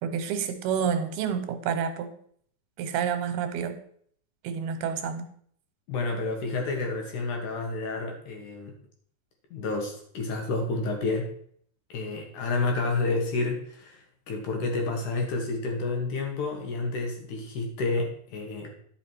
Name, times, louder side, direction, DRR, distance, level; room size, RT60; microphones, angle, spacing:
voice 1, 0.0-2.1 2.8-3.8 4.4-5.3, right 7 dB, 85° right, 2.9 m, -29 dB
voice 2, 5.9-8.8 9.5-11.3 11.9-18.7, left 3 dB, 65° left, 2.4 m, -30 dB
12.0 x 5.7 x 4.5 m
omnidirectional pair, 4.4 m